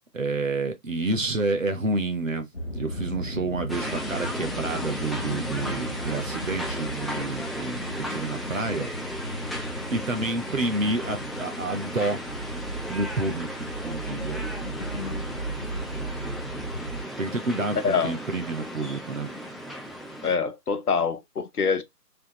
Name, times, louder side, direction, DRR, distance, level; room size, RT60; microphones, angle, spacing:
voice 1, 0.1-2.5 2.7-8.9 9.9-12.2 12.9-14.4 17.2-19.3, right 2 dB, 55° right, 0.8 m, -29 dB
sound 1, 2.5-17.0, right 1 dB, 40° left, 0.8 m, -36 dB
sound 2, 3.7-20.3, equal, ahead, 0.4 m, -35 dB
voice 2, 14.8-15.2 17.8-18.2 20.2-21.8, left 5 dB, 65° left, 0.8 m, -26 dB
3.5 x 2.7 x 2.9 m
figure-of-eight pair, 175°, 48 cm